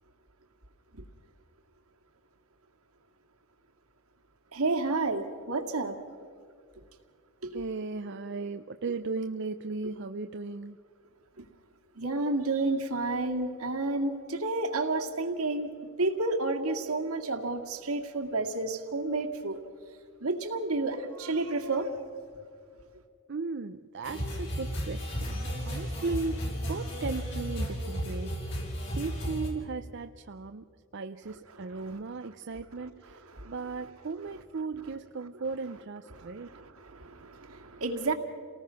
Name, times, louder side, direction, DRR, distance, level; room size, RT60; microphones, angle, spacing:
voice 1, 4.5-6.0 7.4-7.6 12.0-15.7 16.0-19.6 20.2-21.9 33.4-33.5 36.4-38.1, right 2 dB, 75° right, 3 dB, 2.1 m, -30 dB
voice 2, 7.5-10.8 23.3-28.6 29.0-30.6 30.9-36.5, right 4 dB, 50° right, 8 dB, 0.5 m, -36 dB
sound 1, 24.0-29.5, equal, 55° left, 5.6 m, -34 dB
29.5 x 19.0 x 5.7 m, 2.2 s
head